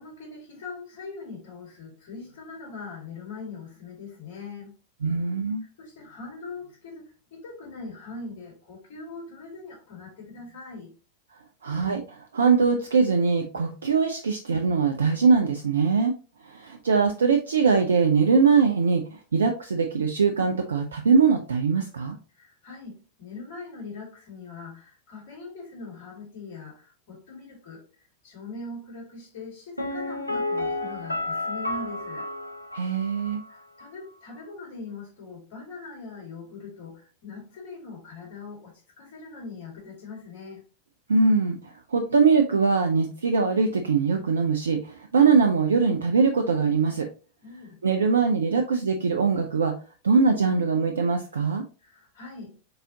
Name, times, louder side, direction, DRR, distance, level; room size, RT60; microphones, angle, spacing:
voice 1, 0.0-4.8 5.8-10.9 22.3-32.3 33.5-40.6 47.4-47.8 51.8-52.5, left 3 dB, 50° left, 2.2 m, -41 dB
voice 2, 5.0-5.6 11.6-16.1 16.4-22.2 32.7-33.4 41.1-47.1 47.8-49.7 50.0-51.6, right 5 dB, 70° right, 0.4 m, -22 dB
Piano, 29.8-33.5 33.8-33.9, left 2 dB, 85° left, 0.6 m, -31 dB
4.0 x 3.7 x 2.7 m
figure-of-eight pair, 90°, 0 cm